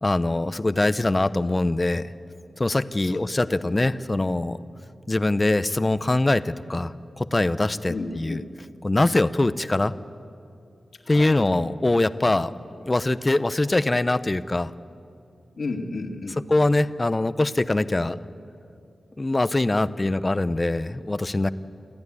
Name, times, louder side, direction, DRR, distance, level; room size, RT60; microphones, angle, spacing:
voice 1, 0.0-2.0 2.6-4.6 5.1-8.4 8.8-9.9 11.1-12.5 12.8-14.7 16.5-18.2 19.2-21.5, left 2 dB, 25° left, 14 dB, 0.7 m, -23 dB
voice 2, 3.0-3.8 7.9-8.5 11.0-11.4 15.6-16.4, left 3 dB, 60° left, 1 dB, 2.2 m, -33 dB
27.0 x 14.0 x 9.8 m, 2.6 s
wide cardioid pair, 105°, 0 cm